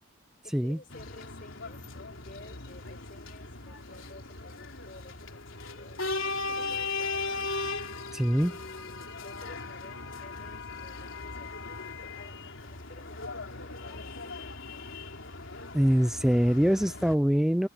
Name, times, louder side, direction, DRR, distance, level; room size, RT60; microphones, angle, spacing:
voice 1, 0.4-7.6 8.2-14.4, left 2 dB, 45° left, 6.2 m, -52 dB
sound 1, 0.9-17.2, left 3 dB, 75° left, 3.6 m, -38 dB
voice 2, 8.1-8.5 15.7-17.7, equal, 5° right, 0.4 m, -24 dB
head